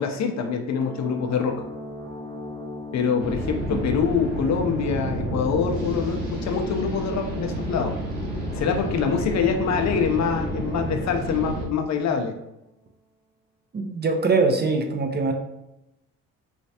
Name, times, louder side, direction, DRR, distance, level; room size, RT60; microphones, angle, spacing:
voice 1, 0.0-1.6 2.9-7.9 8.5-12.3, left 6 dB, 50° left, 5 dB, 0.6 m, -25 dB
sound 1, 0.8-12.3, left 1 dB, 10° left, 0.8 m, -39 dB
sound 2, 3.2-11.7, right 1 dB, 80° right, 1.0 m, -30 dB
voice 2, 13.7-15.3, right 3 dB, 30° right, 4 dB, 0.6 m, -22 dB
3.2 x 3.1 x 2.8 m, 0.89 s
hypercardioid pair, 55°, 36 cm